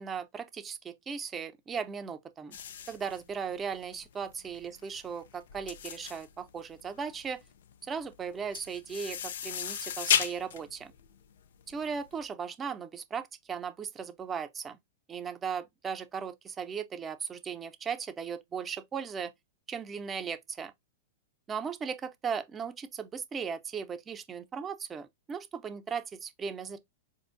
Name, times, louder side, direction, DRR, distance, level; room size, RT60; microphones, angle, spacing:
voice 1, 0.0-2.6 2.9-7.4 7.8-10.9 11.7-14.8 15.1-19.3 19.7-20.7 21.5-26.8, right 6 dB, 20° right, 0.5 m, -37 dB
sound 1, 2.5-12.1, left 8 dB, 75° left, 0.4 m, -35 dB
4.3 x 2.4 x 2.5 m
hypercardioid pair, 140°, 0 cm